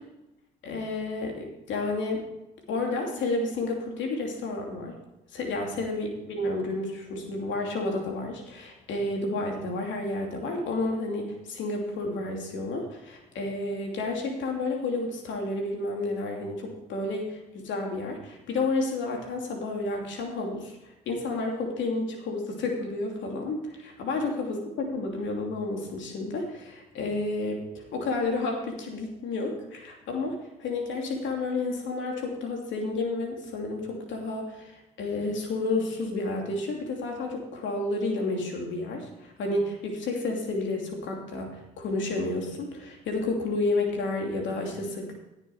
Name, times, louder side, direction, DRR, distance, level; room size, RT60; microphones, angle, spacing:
voice 1, 0.6-2.2 2.7-5.0 5.3-20.7 21.1-27.6 27.9-34.7 35.0-45.1, left 2 dB, 70° left, 1 dB, 2.7 m, -31 dB
16.5 x 6.8 x 4.6 m, 0.95 s
hypercardioid pair, 55°, 20 cm